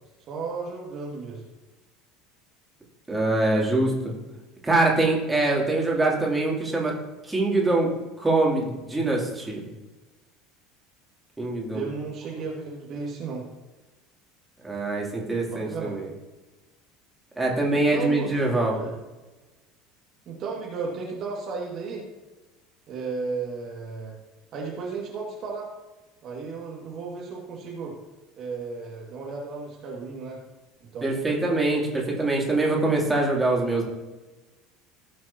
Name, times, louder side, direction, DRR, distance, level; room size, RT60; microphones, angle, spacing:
voice 1, 0.3-1.4 11.7-13.5 15.5-16.0 17.7-19.0 20.3-22.1 22.9-24.1 24.5-25.7 26.2-28.0 28.4-30.4 30.8-31.1, right 4 dB, 40° right, -2 dB, 2.1 m, -34 dB
voice 2, 3.1-4.1 4.6-6.9 7.2-7.9 8.2-9.6 11.4-11.9 14.6-16.1 17.4-18.7 31.0-33.8, right 2 dB, 10° right, -2 dB, 3.0 m, -24 dB
16.5 x 7.5 x 2.9 m, 1.1 s
figure-of-eight pair, 70°, 0 cm